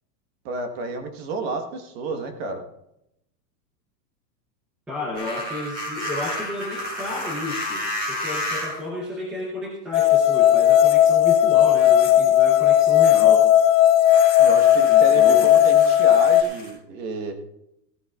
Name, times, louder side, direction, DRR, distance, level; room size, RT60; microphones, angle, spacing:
voice 1, 0.4-2.6 14.4-17.3, right 3 dB, 35° right, 6 dB, 1.3 m, -30 dB
voice 2, 4.9-13.5 14.9-15.5, left 2 dB, ahead, -4 dB, 0.6 m, -32 dB
sound 1, 5.1-8.9 9.9-10.0 14.0-16.7, left 1 dB, 20° right, 5.1 m, -32 dB
sound 2, 9.9-16.4, left 11 dB, 55° left, 0.5 m, -16 dB
16.0 x 13.5 x 2.4 m, 0.82 s
supercardioid pair, 175°, 49 cm